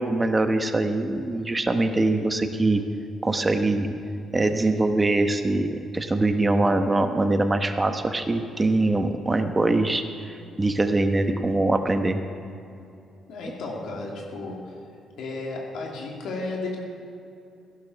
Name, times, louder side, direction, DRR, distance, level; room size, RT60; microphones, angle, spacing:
voice 1, 0.0-2.8 3.2-3.9 4.3-12.2, right 2 dB, 20° right, 7 dB, 1.1 m, -23 dB
voice 2, 13.3-14.7 15.2-16.8, left 2 dB, 80° left, -2 dB, 2.6 m, -33 dB
16.0 x 11.5 x 4.1 m, 2.7 s
cardioid pair, 90°, 0 cm